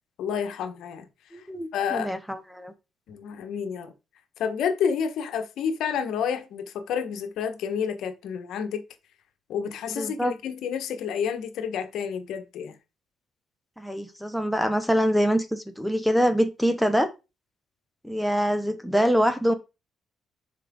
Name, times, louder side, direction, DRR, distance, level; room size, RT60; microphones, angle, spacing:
voice 1, 0.2-1.1 1.7-2.1 3.1-3.9 4.4-8.8 9.5-12.7, left 7 dB, 80° left, 1.3 m, -29 dB
voice 2, 1.3-2.7 9.9-10.3 13.8-17.1 18.0-19.5, equal, ahead, 1.2 m, -24 dB
7.4 x 5.8 x 3.7 m
cardioid pair, 90°, 0 cm